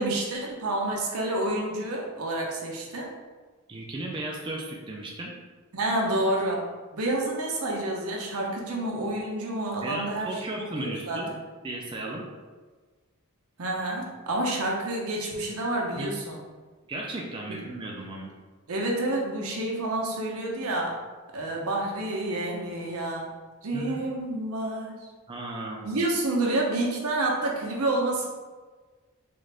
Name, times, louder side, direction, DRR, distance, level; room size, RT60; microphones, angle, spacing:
voice 1, 0.0-3.1 5.7-6.6 6.9-11.2 13.6-16.4 17.5-17.6 18.7-21.0 21.3-23.3 23.6-25.1 25.8-28.3, right 2 dB, 80° right, -1 dB, 0.7 m, -29 dB
voice 2, 3.7-5.3 9.8-11.4 11.6-12.2 16.0-16.1 16.9-18.3 23.7-24.1 25.3-26.0, right 1 dB, 20° right, -1 dB, 0.4 m, -35 dB
3.8 x 2.5 x 3.2 m, 1.4 s
head